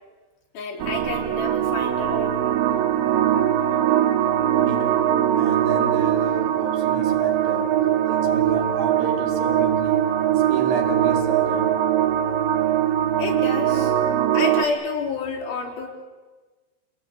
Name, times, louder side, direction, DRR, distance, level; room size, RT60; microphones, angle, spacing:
voice 1, 0.5-2.7 13.2-13.9 14.3-15.9, left 4 dB, 60° left, -1 dB, 5.3 m, -29 dB
sound 1, 0.8-14.6, right 10 dB, 90° right, 3.8 m, -21 dB
voice 2, 4.6-5.1 5.3-7.7 8.1-10.0 10.3-11.7, right 5 dB, 55° right, 3 dB, 4.1 m, -32 dB
28.5 x 20.0 x 8.7 m, 1.3 s
omnidirectional pair, 5.0 m